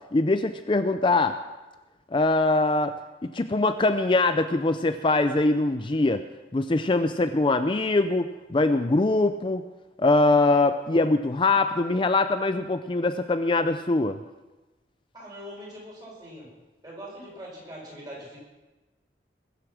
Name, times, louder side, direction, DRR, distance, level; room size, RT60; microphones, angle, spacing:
voice 1, 0.1-1.4 2.1-3.0 3.2-6.2 6.5-9.6 10.0-14.2, left 2 dB, 30° left, 9 dB, 0.5 m, -23 dB
voice 2, 15.1-16.5 16.8-18.4, equal, 25° right, -4 dB, 6.2 m, -42 dB
21.0 x 8.2 x 6.1 m, 1.1 s
head